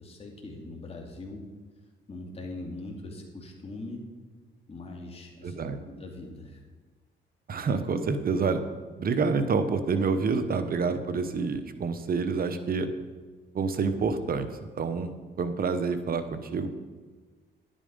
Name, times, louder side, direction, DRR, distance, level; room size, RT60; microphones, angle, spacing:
voice 1, 0.0-1.5 2.1-4.1 4.7-6.6, left 2 dB, 30° left, 0 dB, 2.3 m, -41 dB
voice 2, 5.4-5.8 7.5-8.6 9.0-12.9 13.5-16.7, right 4 dB, 50° right, 10 dB, 0.9 m, -28 dB
11.0 x 9.0 x 5.3 m, 1.4 s
cardioid pair, 90°, 20 cm